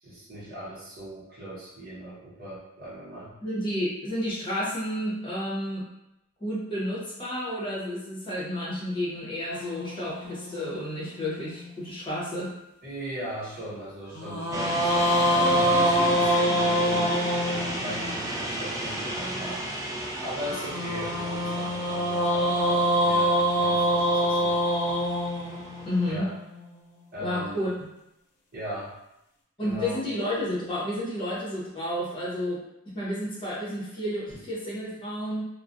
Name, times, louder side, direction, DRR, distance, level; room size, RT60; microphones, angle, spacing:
voice 1, 0.0-3.3 12.8-17.1 17.4-19.6 20.2-24.6 26.1-26.3 27.1-27.6 28.5-28.9 29.6-30.0, equal, 50° right, -8 dB, 0.9 m, -38 dB
voice 2, 3.4-5.9 6.4-12.5 25.9-26.3 27.2-27.9 29.6-32.6 32.9-35.4, left 1 dB, 25° left, -8 dB, 0.8 m, -31 dB
sound 1, 9.5-11.9 14.1-18.3 20.4-26.6, equal, 50° left, 0.5 m, -25 dB
sound 2, 14.5-26.1, right 1 dB, 15° right, 0.3 m, -35 dB
2.3 x 2.0 x 2.5 m, 0.85 s
head